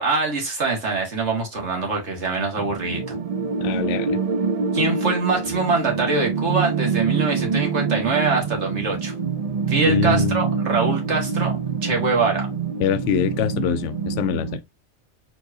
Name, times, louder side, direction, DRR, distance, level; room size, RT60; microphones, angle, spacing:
voice 1, 0.0-3.2 4.7-9.1 9.7-12.5, right 3 dB, 70° right, 2.1 m, -24 dB
sound 1, 2.6-14.6, right 5 dB, 50° right, 0.4 m, -25 dB
voice 2, 3.6-4.2 9.9-10.4 12.8-14.6, left 9 dB, 80° left, 0.9 m, -24 dB
4.6 x 3.9 x 2.7 m
omnidirectional pair, 1.2 m